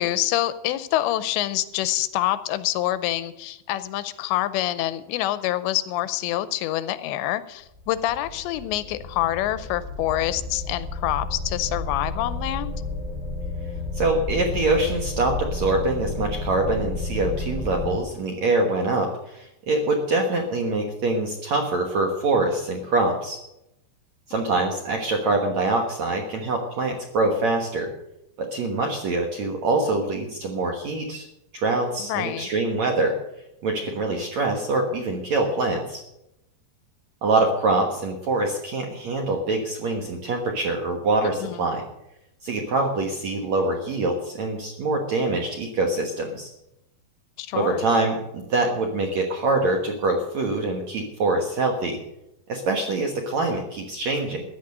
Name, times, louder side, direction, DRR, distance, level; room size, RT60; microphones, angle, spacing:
voice 1, 0.0-12.7 32.0-32.5 41.4-41.7 47.4-47.8, left 14 dB, 85° left, 13 dB, 2.9 m, -26 dB
sound 1, 7.8-18.0, left 2 dB, 15° right, 1.7 m, -31 dB
voice 2, 13.9-23.4 24.3-27.9 28.4-31.3 31.5-33.2 33.6-36.0 37.2-41.8 42.4-46.5 47.5-52.0 52.5-54.4, right 2 dB, 65° right, 2 dB, 1.8 m, -24 dB
14.5 x 10.5 x 6.6 m, 0.85 s
omnidirectional pair, 5.1 m